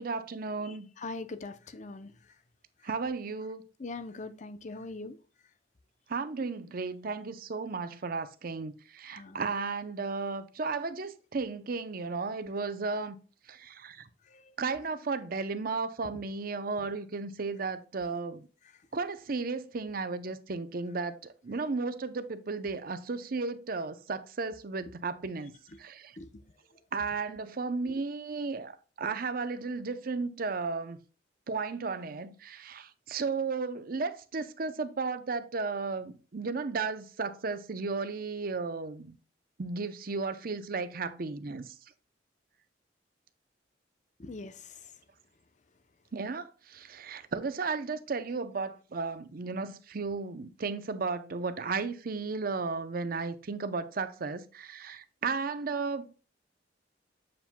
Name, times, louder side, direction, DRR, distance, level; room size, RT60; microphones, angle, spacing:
voice 1, 0.0-0.9 2.8-3.6 6.1-13.2 13.5-14.1 14.6-18.5 18.9-25.5 25.8-26.2 26.9-31.0 31.5-39.2 39.6-41.7 46.1-56.1, right 4 dB, 55° right, 0.6 m, -34 dB
voice 2, 0.6-2.1 3.8-5.2 9.1-9.4 14.3-14.5 26.2-26.3 44.2-44.8, left 3 dB, 40° left, 0.6 m, -42 dB
7.4 x 7.2 x 2.2 m
head